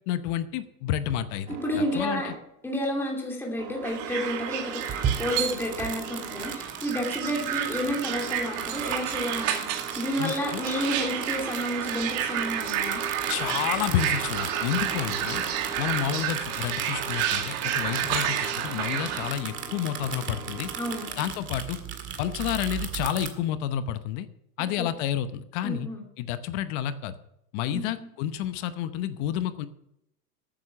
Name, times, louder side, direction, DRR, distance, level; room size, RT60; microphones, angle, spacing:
voice 1, 0.1-2.3 10.2-10.6 13.3-15.4 15.8-20.7 21.2-21.8 22.2-24.3 24.6-25.9 26.2-27.1 27.5-29.7, left 11 dB, 45° left, 12 dB, 0.9 m, -30 dB
voice 2, 1.5-2.3 2.6-9.7 10.0-13.0 20.7-21.2 24.8-24.9 25.6-26.0 27.7-28.1, equal, 5° left, -1 dB, 2.7 m, -31 dB
sound 1, 1.5-21.1, right 6 dB, 80° right, 2.2 m, -43 dB
sound 2, 3.8-19.3, right 10 dB, 55° right, 2.2 m, -31 dB
sound 3, 4.7-23.3, right 7 dB, 25° right, 1.9 m, -37 dB
13.5 x 9.0 x 5.9 m, 0.79 s
supercardioid pair, 135°, 47 cm